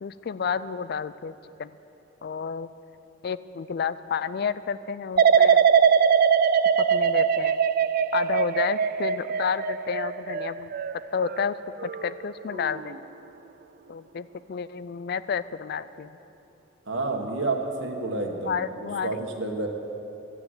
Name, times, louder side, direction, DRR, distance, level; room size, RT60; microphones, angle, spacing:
voice 1, 0.0-1.7 2.2-2.7 3.2-5.7 6.8-7.6 8.1-10.7 11.1-12.9 13.9-16.2 18.5-19.2, left 6 dB, 50° left, 15 dB, 0.4 m, -31 dB
sound 1, 5.2-12.1 12.5-13.0, right 7 dB, 50° right, 0.4 m, -22 dB
voice 2, 16.9-18.6 19.0-19.7, right 2 dB, 65° right, 3 dB, 1.5 m, -29 dB
12.5 x 8.9 x 9.5 m, 3.0 s
head